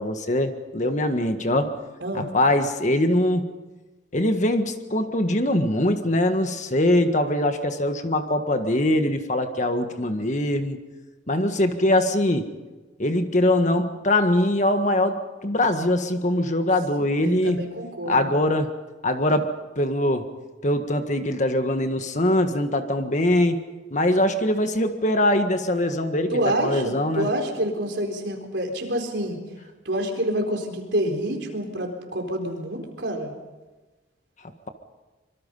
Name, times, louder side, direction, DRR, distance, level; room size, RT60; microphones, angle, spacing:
voice 1, 0.0-1.7 2.1-3.5 4.1-10.8 11.3-12.5 13.0-17.6 18.1-18.7 19.0-19.5 19.7-20.2 20.6-23.6 23.9-26.3 26.6-27.3, left 1 dB, 40° left, 7 dB, 1.7 m, -22 dB
voice 2, 2.0-2.3 17.2-18.3 26.3-29.4 29.8-33.3, right 1 dB, 70° right, 3 dB, 4.1 m, -27 dB
25.5 x 23.5 x 5.6 m, 1.2 s
head